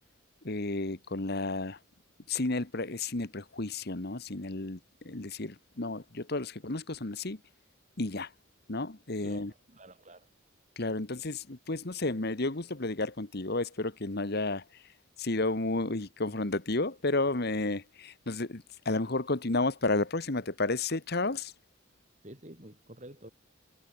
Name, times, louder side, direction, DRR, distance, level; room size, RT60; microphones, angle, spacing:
voice 1, 0.4-1.8 2.3-4.8 5.0-7.4 8.0-8.3 8.7-9.5 10.8-14.8 15.2-21.5, left 2 dB, 50° left, 1.5 m, -32 dB
voice 2, 9.2-10.3 22.2-23.3, right 1 dB, 35° right, 7.2 m, -50 dB
head